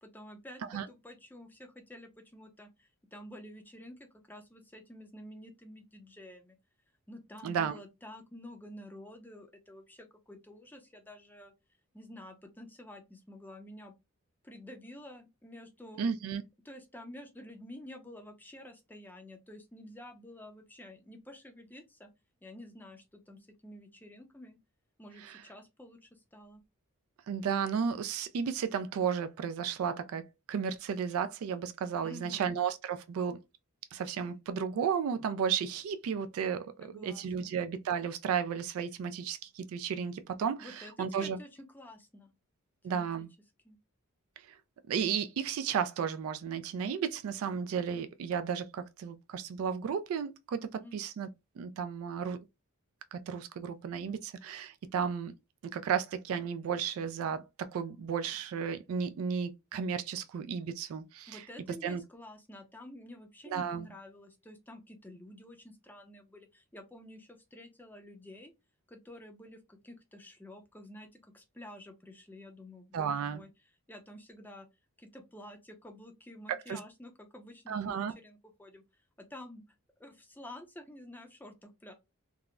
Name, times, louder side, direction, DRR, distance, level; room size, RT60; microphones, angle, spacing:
voice 1, 0.0-6.6 7.1-11.5 11.9-13.9 14.4-16.1 16.6-22.1 22.4-24.6 25.0-26.6 32.0-32.6 36.8-37.5 40.6-40.9 41.2-41.5 41.7-42.3 42.8-43.3 43.6-43.8 50.7-51.0 61.3-68.5 68.9-73.5 73.9-74.7 75.0-78.8 79.2-79.6 80.0-81.9, left 1 dB, 10° left, 0.5 m, -50 dB
voice 2, 7.4-7.8 16.0-16.4 25.2-25.4 27.3-30.2 30.5-33.4 33.9-41.4 42.8-43.3 44.5-44.6 44.9-51.3 51.6-52.4 53.1-55.3 55.7-61.4 61.8-62.0 63.5-63.9 72.9-73.4 76.5-76.8 77.7-78.1, right 7 dB, 70° right, 0.3 m, -33 dB
3.6 x 2.0 x 2.3 m
head